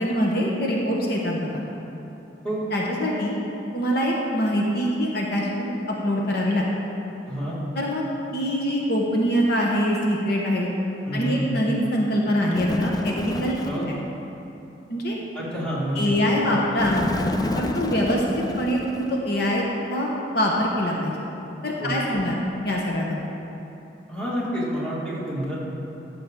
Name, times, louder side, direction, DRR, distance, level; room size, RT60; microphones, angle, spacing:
voice 1, 0.0-1.6 2.7-3.4 3.7-6.6 7.7-8.1 8.3-10.7 11.1-13.9 14.9-15.2 15.9-17.0 17.5-18.2 18.6-21.2 21.6-22.4 22.6-23.2, equal, 60° left, -2 dB, 1.1 m, -24 dB
voice 2, 7.2-7.6 11.1-11.5 13.6-13.8 15.3-16.2 21.8-22.2 24.1-25.6, equal, 5° left, -8 dB, 2.4 m, -28 dB
Bird, 12.5-13.9 16.8-19.3, left 1 dB, 20° left, 0.4 m, -29 dB
13.5 x 7.6 x 3.8 m, 2.9 s
head